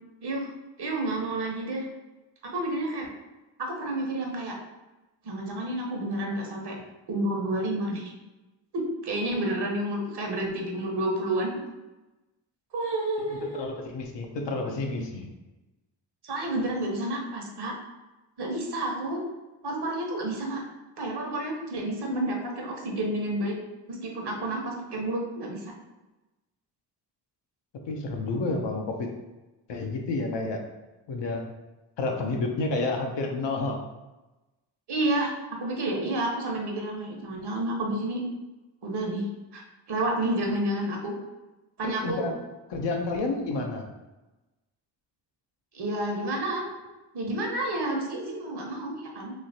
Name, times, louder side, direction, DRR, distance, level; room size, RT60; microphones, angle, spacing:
voice 1, 0.8-1.9 2.4-3.1 3.6-4.6 5.2-6.8 7.1-8.1 8.7-11.5 12.7-13.6 16.2-17.7 18.4-19.2 19.6-20.6 21.0-23.5 23.9-25.6 34.9-35.3 35.6-38.2 38.8-39.2 39.5-39.6 39.9-41.1 41.8-42.3 45.7-46.7 47.1-49.3, right 1 dB, 50° right, 0 dB, 1.0 m, -30 dB
voice 2, 13.3-15.3 27.9-29.1 29.7-30.6 31.1-31.5 32.0-33.8 41.8-42.4 42.7-43.9, left 3 dB, 60° left, 2 dB, 0.7 m, -30 dB
3.2 x 2.8 x 2.7 m, 1.1 s
supercardioid pair, 40°, 50 cm